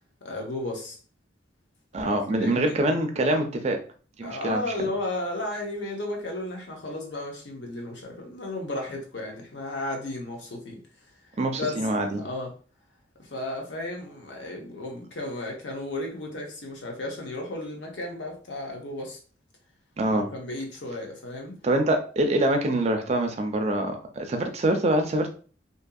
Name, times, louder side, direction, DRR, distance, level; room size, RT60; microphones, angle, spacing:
voice 1, 0.2-1.0 2.3-2.8 4.2-10.8 11.5-11.8 12.2-12.5 13.2-19.2 20.1-21.6, left 2 dB, 75° left, 0.8 m, -34 dB
voice 2, 1.9-3.8 4.2-4.9 11.4-12.2 20.0-20.3 21.6-25.3, right 1 dB, 35° right, 0.4 m, -25 dB
2.7 x 2.6 x 2.3 m
head